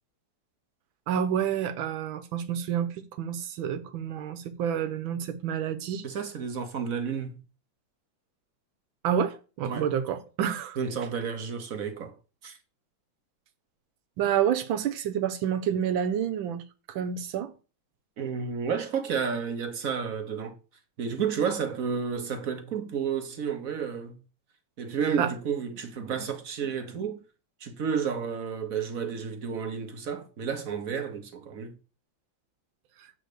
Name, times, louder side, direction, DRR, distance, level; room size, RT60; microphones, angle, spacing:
voice 1, 1.1-6.0 9.0-10.8 14.2-16.6 16.9-17.5 25.2-25.3, right 9 dB, 90° right, 1.5 m, -29 dB
voice 2, 6.0-7.4 9.6-9.9 10.8-12.1 12.4-12.6 18.2-20.6 21.0-24.2 24.8-27.2 27.6-31.8, right 6 dB, 55° right, 1.2 m, -31 dB
7.8 x 4.2 x 6.7 m
omnidirectional pair, 2.1 m